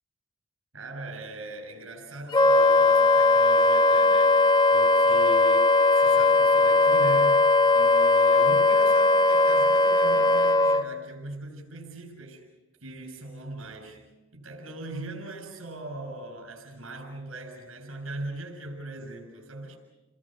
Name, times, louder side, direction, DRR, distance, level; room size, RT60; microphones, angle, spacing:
voice 1, 0.7-4.4 4.7-12.5 12.8-19.8, right 2 dB, 85° right, 7.0 m, -40 dB
Wind instrument woodwind instrument, 2.3-10.8, left 2 dB, 20° left, 1.2 m, -19 dB
30.0 x 22.5 x 7.6 m
head